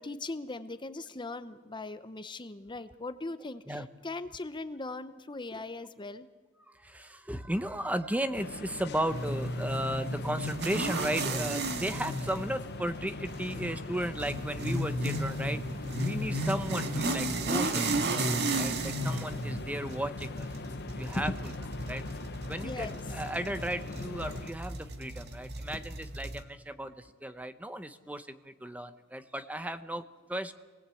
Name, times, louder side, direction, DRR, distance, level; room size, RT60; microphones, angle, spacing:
voice 1, 0.0-6.3 21.2-21.4 22.6-23.0, left 2 dB, 20° left, 11 dB, 0.8 m, -39 dB
voice 2, 6.7-15.6 16.0-20.5 21.0-21.5 21.9-22.0 22.5-30.5, right 1 dB, 5° right, 11 dB, 0.9 m, -35 dB
sound 1, 8.3-24.5, left 3 dB, 50° left, 0.9 m, -43 dB
sound 2, 9.1-26.4, right 1 dB, 55° right, 1.8 m, -34 dB
26.5 x 19.5 x 8.5 m, 1.4 s
head